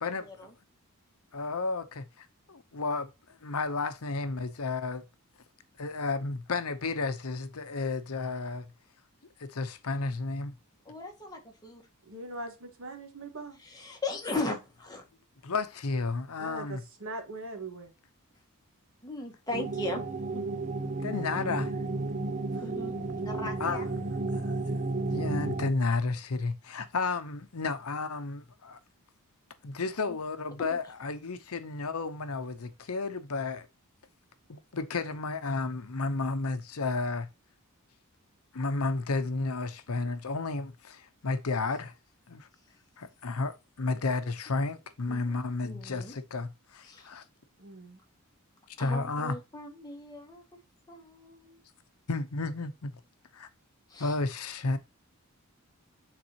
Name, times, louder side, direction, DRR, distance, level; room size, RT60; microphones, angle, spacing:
voice 1, 0.0-0.5 1.3-3.1 3.4-5.0 5.8-8.6 9.4-10.5 15.4-16.8 20.7-21.7 23.6-23.9 24.3-28.8 29.6-33.7 34.5-37.3 38.5-41.9 42.3-42.5 43.0-47.2 48.8-49.4 52.1-52.9 53.3-53.5 54.0-54.8, left 3 dB, 70° left, 0.8 m, -32 dB
voice 2, 10.9-11.8 13.7-15.0 19.0-20.0 22.6-22.9 23.2-23.9 45.1-45.3 45.6-46.1 46.9-47.1 48.8-50.4 50.9-51.6 53.9-54.2, left 2 dB, 15° left, 1.8 m, -37 dB
voice 3, 12.1-13.6 16.4-17.9 47.6-48.0, right 2 dB, 65° right, 1.6 m, -41 dB
sound 1, 19.5-25.7, right 3 dB, 35° right, 0.5 m, -32 dB
9.0 x 4.1 x 2.9 m
head